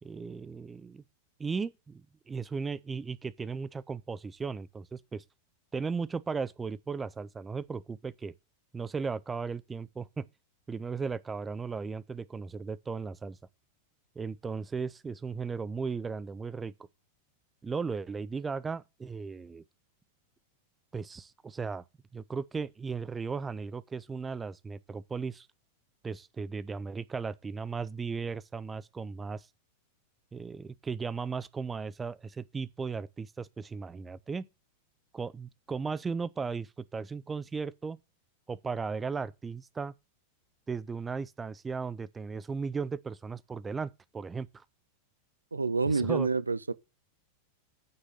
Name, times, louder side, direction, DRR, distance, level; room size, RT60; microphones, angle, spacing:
voice 1, 0.0-1.0 1.4-5.2 5.7-8.3 8.7-10.3 10.7-13.4 14.2-16.7 17.6-19.6 20.9-21.8 22.1-25.5 26.0-29.5 30.3-34.5 35.1-38.0 38.5-39.9 40.7-44.6 45.9-46.3, right 5 dB, 15° right, 0.5 m, -36 dB
voice 2, 45.5-46.7, right 4 dB, 80° right, 0.5 m, -28 dB
9.4 x 6.4 x 6.5 m
figure-of-eight pair, 90°, 0 cm